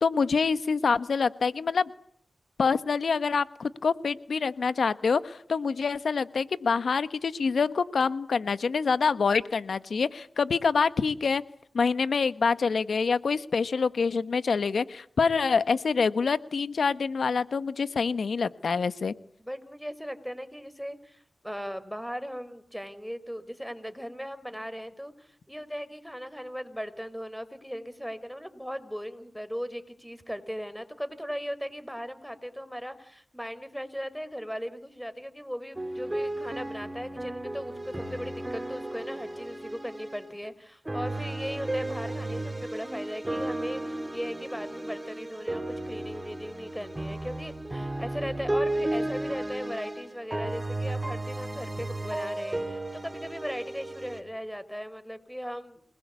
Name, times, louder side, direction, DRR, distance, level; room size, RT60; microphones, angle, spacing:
voice 1, 0.0-1.9 2.6-11.4 11.7-19.1, left 5 dB, 75° left, 14 dB, 1.3 m, -26 dB
voice 2, 19.4-55.8, equal, ahead, 13 dB, 4.7 m, -38 dB
sound 1, 35.7-40.3 40.8-54.2, right 1 dB, 25° right, 5.4 m, -34 dB
28.0 x 20.5 x 8.3 m, 0.64 s
cardioid pair, 45°, 0 cm